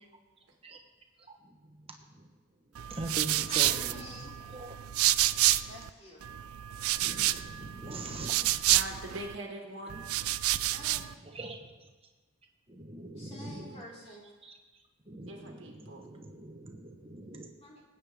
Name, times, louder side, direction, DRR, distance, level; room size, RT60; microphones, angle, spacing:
voice 1, 1.3-2.3 2.9-4.8 7.0-8.6 10.6-11.9 12.7-13.8 14.4-14.6 15.1-17.5, right 2 dB, 25° right, 1.2 m, -43 dB
sound 1, 2.8-5.9 6.2-9.4 9.9-11.1, right 15 dB, 85° right, 0.4 m, -29 dB
voice 2, 3.5-4.3 5.7-6.4 10.6-11.0 13.1-14.2 17.6-17.8, left 1 dB, 30° left, 2.9 m, -49 dB
voice 3, 8.7-10.0 15.3-16.0, right 1 dB, 60° right, 1.7 m, -42 dB
19.5 x 9.1 x 3.5 m
head